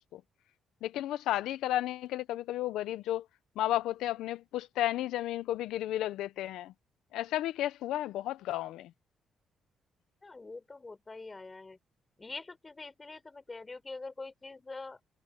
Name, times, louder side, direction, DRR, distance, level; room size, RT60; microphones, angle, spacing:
voice 1, 0.8-3.2 3.6-6.7 7.1-8.9, left 13 dB, 90° left, 0.7 m, -33 dB
voice 2, 10.2-11.8 12.2-15.0, left 3 dB, 25° left, 4.0 m, -44 dB
cardioid pair, 90°, 0 cm